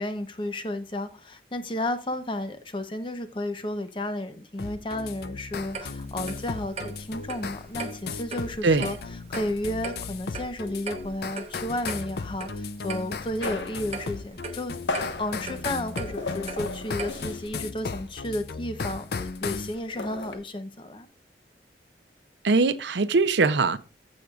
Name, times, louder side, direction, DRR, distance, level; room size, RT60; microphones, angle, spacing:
voice 1, 0.0-14.8 15.2-21.1, left 1 dB, 25° left, 0.8 m, -32 dB
sound 1, 4.6-19.7, left 4 dB, 55° left, 0.5 m, -36 dB
Clock, 5.7-17.5, right 4 dB, 35° right, 0.9 m, -40 dB
sound 2, 13.4-17.7 17.9-18.2 18.4-20.4, left 3 dB, 80° left, 1.1 m, -36 dB
voice 2, 22.4-23.8, right 3 dB, 75° right, 0.6 m, -21 dB
15.0 x 6.3 x 2.4 m
head